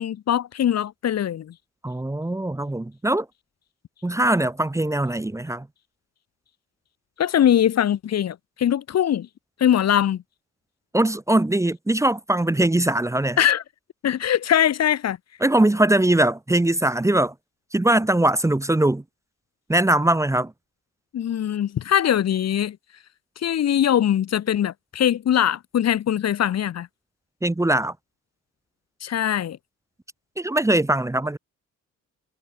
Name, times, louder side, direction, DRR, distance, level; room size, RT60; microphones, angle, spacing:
voice 1, 0.0-1.5 7.2-9.3 9.6-10.2 13.4-13.6 14.0-15.2 21.1-22.8 23.4-26.9 29.0-29.6, left 10 dB, 60° left, 1.6 m, -21 dB
voice 2, 1.8-3.3 4.0-5.7 10.9-13.4 15.4-17.3 17.7-19.0 19.7-20.5 27.4-27.9 30.4-31.4, right 1 dB, 10° right, 1.2 m, -21 dB
cardioid pair, 90°, 30 cm